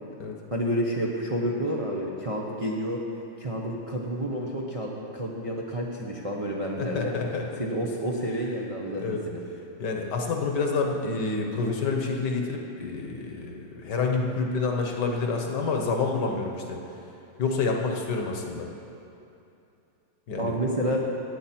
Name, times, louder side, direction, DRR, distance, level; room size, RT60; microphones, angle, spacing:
voice 1, 0.5-3.0 3.4-7.1 7.6-9.4 20.4-21.1, equal, 35° right, -3 dB, 0.5 m, -29 dB
voice 2, 6.8-7.6 8.9-9.2 9.8-16.8 17.4-18.7 20.3-20.6, left 4 dB, 60° left, 2 dB, 1.5 m, -28 dB
16.0 x 9.0 x 4.4 m, 2.8 s
omnidirectional pair, 2.2 m